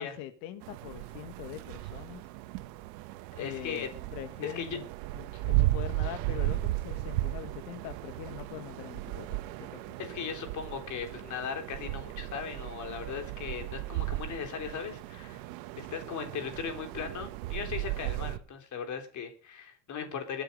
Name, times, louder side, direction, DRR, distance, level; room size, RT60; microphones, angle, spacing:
voice 1, 0.0-2.2 3.4-4.9 5.1-9.4 9.7-10.0, left 12 dB, 85° left, 9 dB, 1.8 m, -42 dB
sound 1, 0.6-18.4, right 17 dB, 85° right, 1.4 m, -35 dB
voice 2, 3.3-3.9 4.4-4.7 5.3-5.4 10.0-15.4 15.8-20.4, left 7 dB, 35° left, 5 dB, 3.5 m, -38 dB
21.5 x 8.9 x 5.4 m, 0.39 s
cardioid pair, 150°, 48 cm